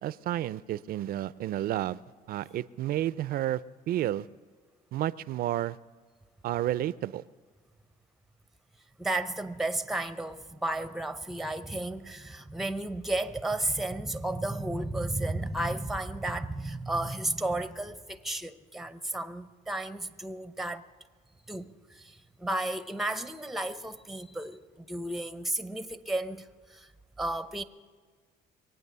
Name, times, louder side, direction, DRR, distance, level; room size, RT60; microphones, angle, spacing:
voice 1, 0.0-2.0 2.3-3.6 3.9-4.3 4.9-5.8 6.4-7.2, right 13 dB, 60° right, 0.5 m, -31 dB
voice 2, 9.0-20.8 21.5-26.9 27.2-27.6, right 1 dB, ahead, 0.7 m, -33 dB
23.0 x 9.0 x 6.8 m
cardioid pair, 110°, 17 cm